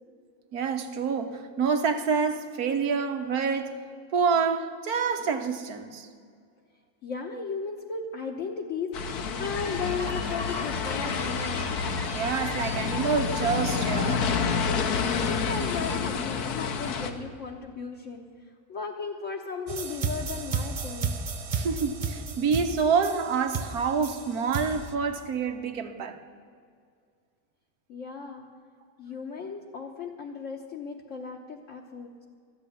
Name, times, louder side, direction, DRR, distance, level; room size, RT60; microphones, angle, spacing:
voice 1, 0.5-3.8 4.1-6.1 12.1-14.3 21.5-26.2, right 5 dB, 80° right, 1.5 m, -27 dB
voice 2, 7.0-11.7 15.2-18.3 18.7-21.1 27.9-28.5 29.0-32.3, left 5 dB, 60° left, 1.2 m, -36 dB
sound 1, 8.9-17.1, left 6 dB, 80° left, 1.5 m, -29 dB
sound 2, 9.4-16.0, equal, 20° left, 1.0 m, -38 dB
sound 3, 19.7-24.9, right 5 dB, 65° right, 0.3 m, -32 dB
13.5 x 7.2 x 10.0 m
omnidirectional pair, 1.6 m